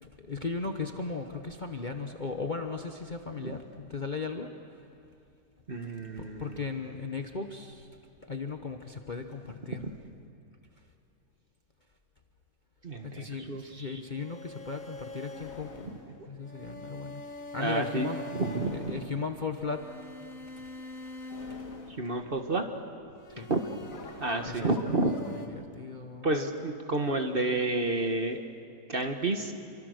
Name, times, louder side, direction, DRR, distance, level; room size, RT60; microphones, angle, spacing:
voice 1, 0.0-4.5 6.2-7.9 8.3-9.8 13.0-15.9 16.3-17.2 17.5-18.2 18.7-19.8 20.6-20.7 21.5-21.6 23.4-23.5 24.5-24.7 25.5-26.4, left 4 dB, 35° left, 4 dB, 1.0 m, -37 dB
voice 2, 5.7-6.6 9.8-9.9 12.8-14.0 16.1-16.2 17.6-18.9 21.9-22.6 23.5-23.6 24.2-25.2 26.2-28.4 28.9-29.6, right 2 dB, 35° right, 5 dB, 1.4 m, -30 dB
sound 1, 14.1-22.6 23.2-25.5, left 2 dB, 55° left, 2.1 m, -44 dB
28.0 x 24.0 x 6.5 m, 2.6 s
omnidirectional pair, 1.8 m